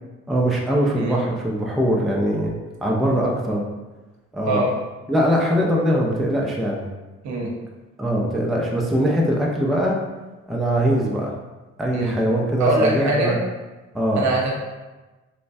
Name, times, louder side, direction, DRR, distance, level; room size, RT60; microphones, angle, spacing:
voice 1, 0.3-2.5 2.8-3.6 4.3-4.6 5.1-6.9 8.0-10.0 10.5-11.3 11.8-13.4 13.9-14.3, equal, ahead, -2 dB, 0.3 m, -21 dB
voice 2, 12.6-13.3 14.1-14.5, right 2 dB, 65° right, -2 dB, 0.8 m, -22 dB
3.1 x 2.1 x 2.6 m, 1.2 s
cardioid pair, 90°, 30 cm